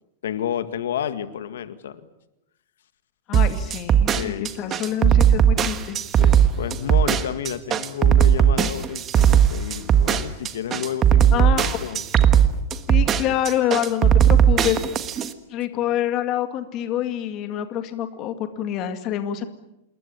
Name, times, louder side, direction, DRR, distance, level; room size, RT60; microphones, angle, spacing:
voice 1, 0.2-2.0 4.1-4.8 6.2-12.0, left 9 dB, 85° left, 11 dB, 2.0 m, -31 dB
voice 2, 3.3-6.0 11.3-11.8 12.9-14.8 15.5-19.5, left 11 dB, 30° left, 8 dB, 2.1 m, -26 dB
sound 1, 3.3-15.3, right 9 dB, 20° right, 1.4 m, -17 dB
27.5 x 21.5 x 8.8 m, 0.87 s
supercardioid pair, 170°, 0 cm